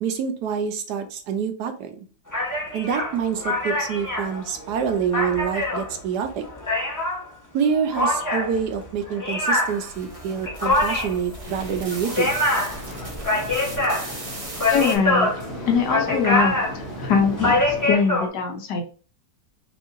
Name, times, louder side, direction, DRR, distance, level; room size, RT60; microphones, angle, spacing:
voice 1, 0.0-2.1 2.7-6.4 7.5-12.4, right 7 dB, 75° right, 7 dB, 1.2 m, -26 dB
sound 1, 2.3-7.2 7.9-18.3, left 2 dB, 15° left, 0.7 m, -24 dB
sound 2, 9.4-15.0, right 2 dB, 30° right, 0.6 m, -38 dB
sound 3, 11.4-18.0, equal, 40° left, 1.4 m, -37 dB
voice 2, 14.7-15.3 15.7-16.6 17.0-18.8, left 5 dB, 80° left, 4 dB, 1.4 m, -22 dB
5.3 x 2.5 x 2.5 m, 0.37 s
omnidirectional pair, 1.8 m